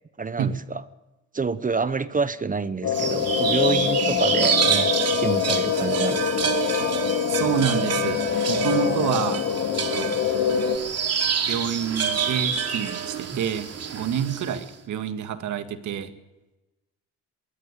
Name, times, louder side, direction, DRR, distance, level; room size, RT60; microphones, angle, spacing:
voice 1, 0.2-0.8 1.3-6.6 13.3-13.4, right 4 dB, 25° right, 14 dB, 1.0 m, -28 dB
sound 1, 2.8-10.8, left 8 dB, 75° left, 2.7 m, -24 dB
sound 2, 2.9-14.6, right 7 dB, 55° right, 3.2 m, -27 dB
voice 2, 7.3-9.4 9.9-10.1 11.5-16.1, right 8 dB, 75° right, 9 dB, 2.0 m, -28 dB
22.0 x 17.5 x 8.4 m, 1.1 s
cardioid pair, 90°, 30 cm